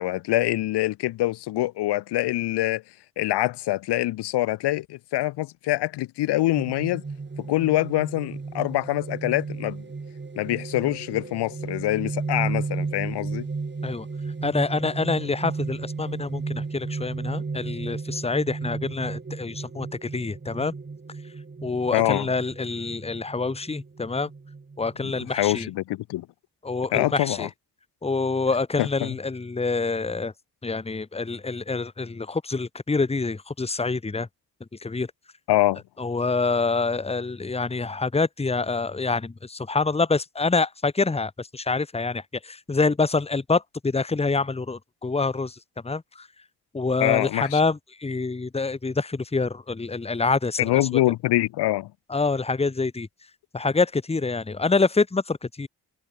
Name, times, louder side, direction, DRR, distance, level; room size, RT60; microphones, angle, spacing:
voice 1, 0.0-2.8 3.2-7.0 7.4-9.8 10.4-13.5 21.9-22.3 25.0-26.3 26.9-27.5 28.8-29.2 35.5-35.8 47.0-47.6 50.6-51.9, left 16 dB, 85° left, 0.7 m, -25 dB
sound 1, 6.6-25.7, right 4 dB, 25° right, 1.6 m, -34 dB
voice 2, 14.4-20.7 21.6-24.3 24.8-25.7 26.6-27.5 28.0-30.3 30.6-34.3 34.8-35.1 36.0-45.6 45.8-46.3 46.7-51.0 52.1-53.1 53.5-55.7, left 3 dB, 15° left, 0.9 m, -26 dB
supercardioid pair, 50°, 39 cm